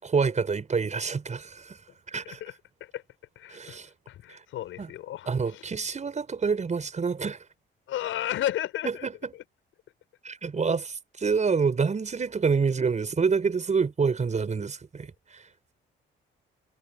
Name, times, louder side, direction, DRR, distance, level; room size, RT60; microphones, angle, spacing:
voice 1, 0.0-1.8 2.1-2.4 3.5-3.9 4.3-4.4 4.8-4.9 5.3-7.4 8.8-9.3 10.2-15.5, right 5 dB, 35° right, 5.8 m, -27 dB
voice 2, 2.2-2.5 2.8-3.0 3.3-3.8 4.1-5.6 7.9-9.1, left 12 dB, 80° left, 6.5 m, -33 dB
cardioid pair, 90°, 20 cm